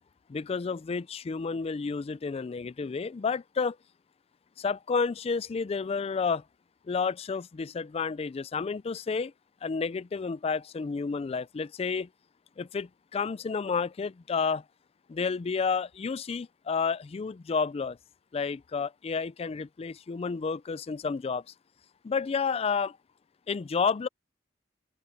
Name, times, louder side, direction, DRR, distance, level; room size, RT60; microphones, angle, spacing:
voice 1, 0.3-3.8 4.6-6.4 6.9-9.3 9.6-12.1 12.6-14.6 15.1-18.0 18.3-21.4 22.0-23.0 23.5-24.1, left 5 dB, 35° left, 0.3 m, -30 dB
open air
head